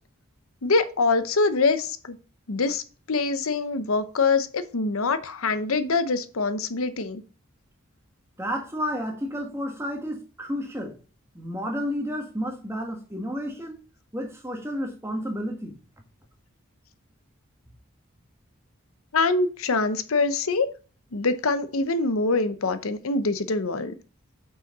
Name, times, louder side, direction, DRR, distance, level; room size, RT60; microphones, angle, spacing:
voice 1, 0.6-2.2 2.5-2.8 3.1-7.2 19.1-20.7 21.1-23.9, left 3 dB, 75° left, 0.8 m, -24 dB
voice 2, 8.4-11.0 11.3-13.8 14.1-15.7, equal, 10° right, 1.5 m, -31 dB
6.3 x 5.7 x 5.3 m
head